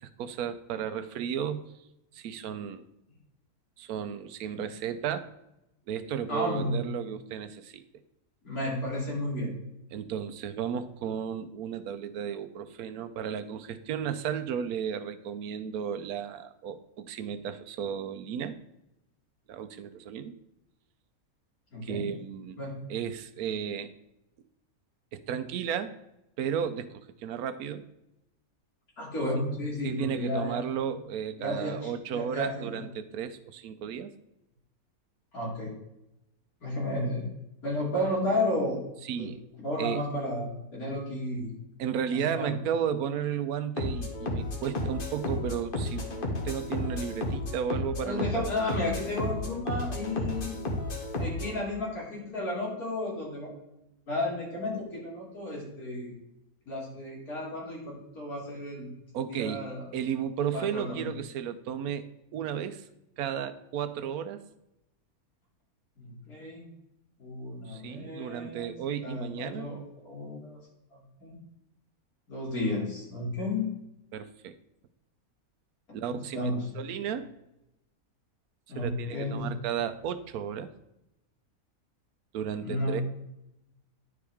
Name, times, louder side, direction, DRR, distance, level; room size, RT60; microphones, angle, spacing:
voice 1, 0.0-1.7 2.1-2.8 3.8-5.3 5.9-7.8 9.9-18.6 19.5-20.3 21.8-22.6 22.9-23.9 25.1-25.9 26.4-27.8 29.8-34.1 39.0-39.4 39.8-40.0 41.8-48.4 59.1-59.6 59.9-62.1 62.3-62.8 63.2-64.4 67.7-69.7 74.1-74.6 75.9-77.3 78.8-80.7 82.3-83.0, right 8 dB, 85° right, 12 dB, 1.1 m, -34 dB
voice 2, 6.3-6.7 8.4-9.5 21.7-22.1 22.6-22.8 29.0-30.6 31.4-32.8 35.3-35.8 36.6-37.3 37.6-38.9 39.2-39.3 39.6-41.5 42.1-42.5 48.0-50.5 51.2-53.5 54.1-56.1 56.7-58.9 59.3-59.8 60.5-61.1 66.0-66.6 67.2-68.7 69.0-70.6 70.9-71.4 72.3-73.7 76.1-76.7 78.7-79.5 82.6-83.0, left 1 dB, 85° left, -4 dB, 3.2 m, -33 dB
sound 1, 43.8-51.5, left 1 dB, 40° left, 1.3 m, -33 dB
10.5 x 4.9 x 3.5 m, 0.87 s
omnidirectional pair, 1.5 m